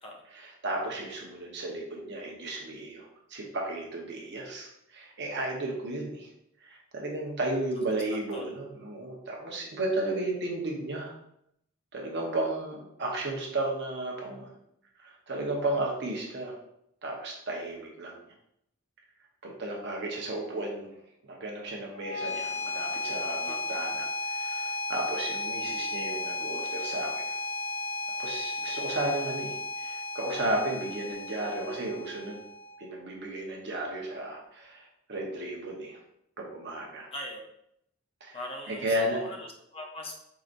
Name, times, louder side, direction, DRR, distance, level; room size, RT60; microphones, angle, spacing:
voice 1, 0.3-6.3 6.6-11.1 11.9-14.5 15.0-16.6 17.0-18.1 19.4-21.0 21.2-27.4 28.2-32.4 32.8-36.0 36.4-37.1 38.2-38.4 38.7-39.3, right 1 dB, 60° right, -1 dB, 0.9 m, -34 dB
voice 2, 7.9-8.5 23.5-23.7 37.1-37.4 38.3-40.2, left 1 dB, 30° left, 1 dB, 0.6 m, -41 dB
sound 1, 21.9-32.9, left 3 dB, 85° left, 1.0 m, -34 dB
4.8 x 2.7 x 2.5 m, 0.76 s
head